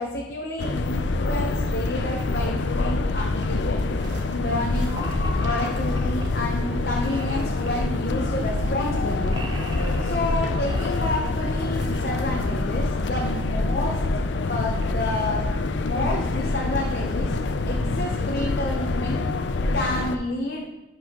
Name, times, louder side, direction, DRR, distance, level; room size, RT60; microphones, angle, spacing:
voice 1, 0.0-3.9 4.3-4.9 5.4-9.4 10.0-14.0 14.4-15.5 15.8-17.3 17.6-19.2 19.7-20.7, left 1 dB, 60° left, -1 dB, 0.8 m, -30 dB
sound 1, 0.6-20.2, left 3 dB, 85° left, 0.5 m, -26 dB
sound 2, 2.1-2.2 2.7-3.4 4.6-6.2 6.6-6.7 7.0-7.9 8.6-8.7 9.0-10.2 10.6-11.7 13.4-13.5 14.0-14.1 14.3-14.4 14.8-15.1 15.5-15.9, right 2 dB, 25° right, 0.5 m, -42 dB
sound 3, 3.9-13.1, right 1 dB, 80° right, 1.2 m, -43 dB
10.5 x 5.5 x 2.9 m, 1.0 s
head